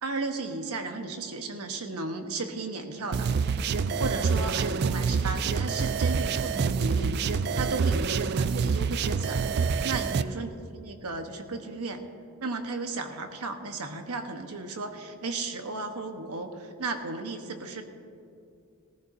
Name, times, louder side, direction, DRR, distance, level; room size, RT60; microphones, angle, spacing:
voice 1, 0.0-3.3 4.0-9.4 9.8-12.0 12.4-17.9, right 3 dB, 90° right, 6 dB, 1.1 m, -34 dB
sound 1, 3.1-10.2, right 5 dB, 45° right, 0.3 m, -27 dB
18.5 x 15.0 x 2.7 m, 2.5 s
head